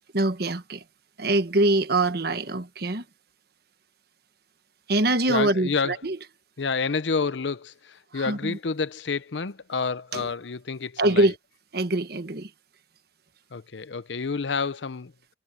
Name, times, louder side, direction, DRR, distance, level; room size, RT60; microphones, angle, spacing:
voice 1, 0.1-0.8 1.2-3.0 4.9-6.2 8.1-8.6 10.1-10.3 11.0-11.3 11.7-12.5, right 2 dB, 60° right, 1.3 m, -24 dB
voice 2, 5.3-5.9 6.6-11.3 13.5-15.3, left 4 dB, 75° left, 0.7 m, -29 dB
head